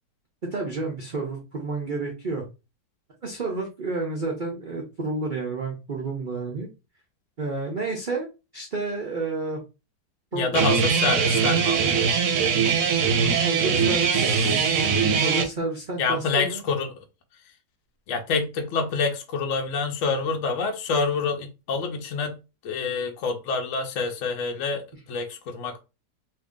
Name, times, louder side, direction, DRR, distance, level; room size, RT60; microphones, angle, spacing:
voice 1, 0.5-2.4 3.2-6.7 7.4-8.3 8.5-9.6 10.3-10.7 13.4-16.6, right 3 dB, 90° right, 0.4 m, -30 dB
voice 2, 10.3-12.1 16.0-17.0 18.1-22.3 22.6-25.8, left 4 dB, 70° left, 0.7 m, -27 dB
Guitar, 10.5-15.4, right 6 dB, 65° right, 0.9 m, -21 dB
2.8 x 2.7 x 3.5 m
omnidirectional pair, 1.9 m